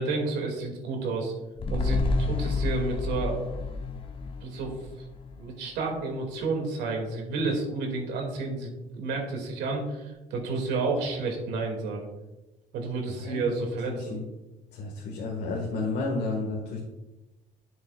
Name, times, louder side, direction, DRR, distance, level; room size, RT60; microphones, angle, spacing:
voice 1, 0.0-1.3 1.7-3.4 4.4-4.9 5.4-12.1 12.7-14.1, right 3 dB, 85° right, 1 dB, 2.3 m, -30 dB
sound 1, 1.6-6.1 6.4-6.5, left 3 dB, 30° left, 0.8 m, -30 dB
voice 2, 13.9-14.2 14.7-16.8, left 3 dB, 75° left, -1 dB, 1.7 m, -31 dB
11.5 x 6.9 x 2.4 m, 1.1 s
cardioid pair, 110°, 17 cm